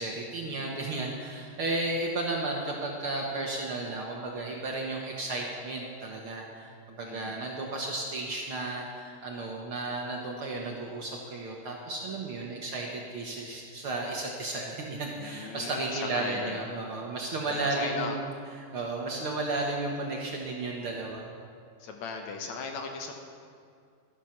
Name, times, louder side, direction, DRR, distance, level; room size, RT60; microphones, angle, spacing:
voice 1, 0.0-18.2 18.7-21.3, right 2 dB, 55° right, -1 dB, 1.7 m, -33 dB
voice 2, 7.0-7.4 15.2-16.6 17.5-18.2 21.8-23.1, left 5 dB, 70° left, 4 dB, 2.2 m, -38 dB
13.0 x 12.5 x 5.8 m, 2.3 s
omnidirectional pair, 3.6 m